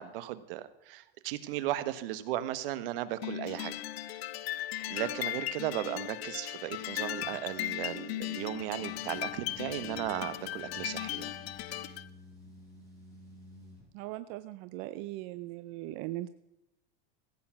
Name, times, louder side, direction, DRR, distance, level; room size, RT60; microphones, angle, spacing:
voice 1, 0.0-3.8 4.0-4.6 4.9-11.3 11.7-11.8, right 14 dB, 65° right, 14 dB, 1.3 m, -36 dB
sound 1, 3.2-12.1, left 14 dB, 85° left, 0.7 m, -37 dB
sound 2, 8.5-13.8, left 1 dB, 10° left, 5.8 m, -52 dB
voice 2, 13.9-16.3, right 16 dB, 45° right, 13 dB, 0.6 m, -39 dB
16.0 x 8.5 x 5.8 m, 0.90 s
supercardioid pair, 145°, 30 cm